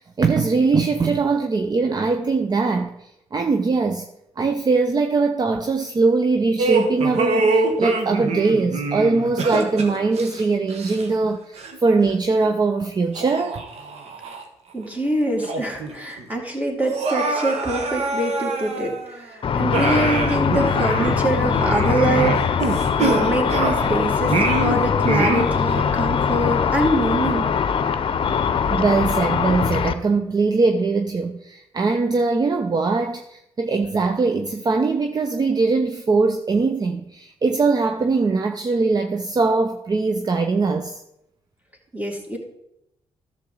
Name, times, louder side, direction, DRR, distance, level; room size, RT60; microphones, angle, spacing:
voice 1, 0.2-4.1 4.4-13.6 28.7-41.0, right 4 dB, 35° right, 0.6 m, -21 dB
sound 1, 6.6-11.3 11.6-11.8 12.4-12.5 13.1-14.4 14.8-14.9 15.3-16.2 16.8-19.2 19.7-23.9 24.3-25.8, right 3 dB, 70° right, 1.4 m, -25 dB
voice 2, 14.7-27.5 41.9-42.4, right 1 dB, 15° right, 2.5 m, -24 dB
Car / Traffic noise roadway noise / Engine, 19.4-29.9, left 7 dB, 50° left, 0.7 m, -22 dB
11.5 x 7.1 x 3.9 m
supercardioid pair, 60°, 11 cm